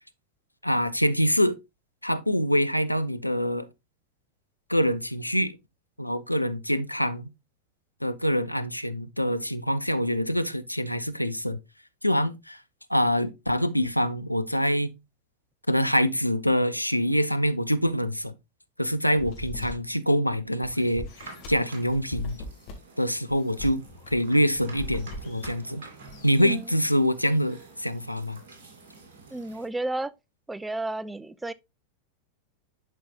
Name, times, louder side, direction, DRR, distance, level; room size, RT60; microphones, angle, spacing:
voice 1, 0.6-1.6 2.0-3.7 4.7-5.5 6.0-7.3 8.0-11.6 12.0-12.6 12.9-14.9 15.7-18.3 18.8-21.1 21.5-22.4 23.0-23.8 24.1-25.8 26.2-28.4, equal, 90° left, 0.5 m, -25 dB
sound 1, 19.2-19.7 20.3-20.4 20.6-21.5 21.9-22.7 23.3-24.1 24.6-25.5 26.1-26.4, left 2 dB, 45° left, 2.1 m, -39 dB
sound 2, 21.1-29.7, right 3 dB, 55° right, 2.4 m, -49 dB
voice 2, 29.3-30.1 30.5-31.5, right 2 dB, 10° right, 0.4 m, -32 dB
11.0 x 4.7 x 2.4 m
figure-of-eight pair, 90°, 0 cm